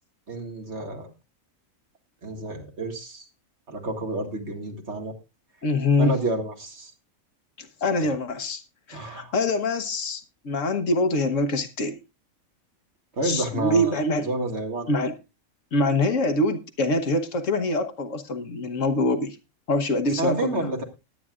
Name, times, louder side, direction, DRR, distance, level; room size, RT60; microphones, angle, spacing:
voice 1, 0.3-1.1 2.2-3.2 3.7-5.1 6.0-6.9 8.0-8.1 8.9-9.3 13.1-14.9 20.2-20.8, right 2 dB, 55° right, 2.3 m, -30 dB
voice 2, 5.6-6.2 7.6-8.6 8.9-12.0 13.2-14.3 14.9-15.1 15.7-19.4 19.7-20.7, left 2 dB, 70° left, 1.4 m, -24 dB
20.5 x 9.2 x 2.4 m
omnidirectional pair, 1.4 m